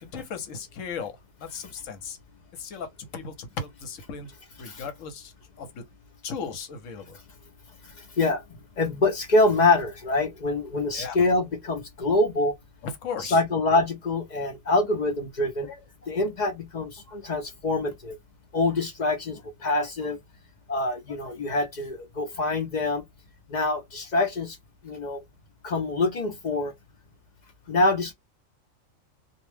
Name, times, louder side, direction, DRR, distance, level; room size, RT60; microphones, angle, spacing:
voice 1, 0.0-1.2 1.4-2.2 2.5-2.9 3.1-4.3 4.6-5.8 6.2-7.2 10.9-11.2 12.8-13.4, left 5 dB, 75° left, 1.1 m, -36 dB
voice 2, 7.8-8.4 8.8-12.5 13.2-18.2 18.5-20.2 20.7-23.0 23.5-24.6 24.8-25.2 25.6-26.7 27.7-28.1, left 2 dB, 55° left, 0.5 m, -25 dB
2.4 x 2.1 x 3.2 m
omnidirectional pair, 1.4 m